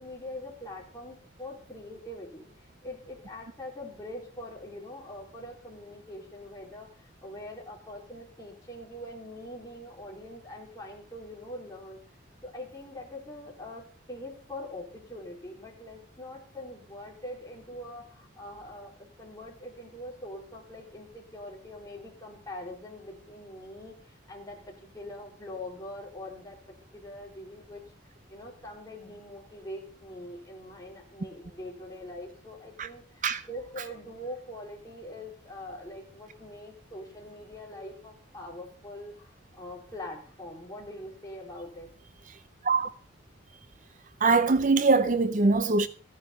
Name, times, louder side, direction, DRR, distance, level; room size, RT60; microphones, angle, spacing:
voice 1, 0.0-12.0 12.4-13.8 14.1-27.8 28.3-41.9, left 1 dB, 15° left, 4.2 m, -43 dB
voice 2, 44.2-45.9, right 3 dB, 40° right, 0.5 m, -22 dB
15.0 x 9.9 x 5.3 m
head